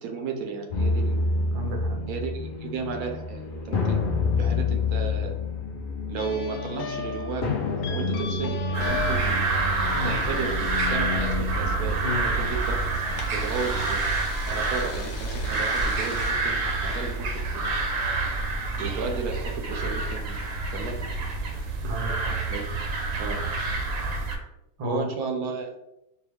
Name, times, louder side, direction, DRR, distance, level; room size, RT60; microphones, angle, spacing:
voice 1, 0.0-1.2 2.1-4.0 4.4-5.4 6.1-9.5 10.0-12.0 12.5-13.0 13.3-14.0 14.5-17.3 17.5-17.9 18.8-20.4 20.7-21.1 22.5-22.6 23.2-23.4 24.8-25.8, right 5 dB, 85° right, 4 dB, 1.2 m, -34 dB
sound 1, 0.7-16.3, left 3 dB, 55° left, 0.6 m, -30 dB
voice 2, 1.5-2.0 9.9-10.2 12.0-12.5 21.8-22.4 24.8-25.1, left 2 dB, 40° right, 1 dB, 0.5 m, -32 dB
sound 2, 6.2-11.3, left 6 dB, 85° left, 1.1 m, -37 dB
sound 3, 8.7-24.4, right 3 dB, 70° right, 1.0 m, -28 dB
4.6 x 2.3 x 3.3 m, 0.87 s
omnidirectional pair, 1.5 m